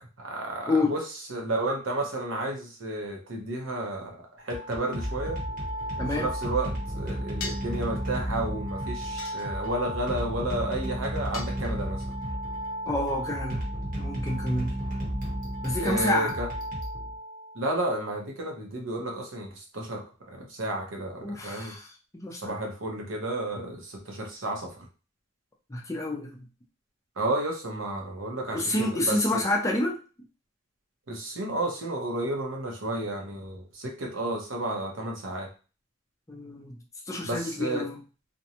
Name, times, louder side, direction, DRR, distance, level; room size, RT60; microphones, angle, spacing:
voice 1, 0.2-1.0 1.3-5.4 5.9-12.0 15.8-16.5 17.5-20.0 20.3-21.7 22.4-24.8 27.2-29.4 31.1-35.5 37.2-37.9, right 1 dB, 70° right, 1 dB, 0.8 m, -32 dB
sound 1, 4.5-17.6, equal, 40° right, 0.9 m, -33 dB
sound 2, 7.4-7.8 9.2-9.9 11.3-12.1, left 5 dB, 80° left, 0.6 m, -40 dB
voice 2, 12.9-13.6 14.0-14.8 15.6-16.3 21.2-21.9 22.2-22.6 25.7-26.3 28.5-30.0 36.3-36.8 37.1-38.0, left 2 dB, 15° left, 0 dB, 0.4 m, -28 dB
2.6 x 2.2 x 2.8 m, 0.34 s
head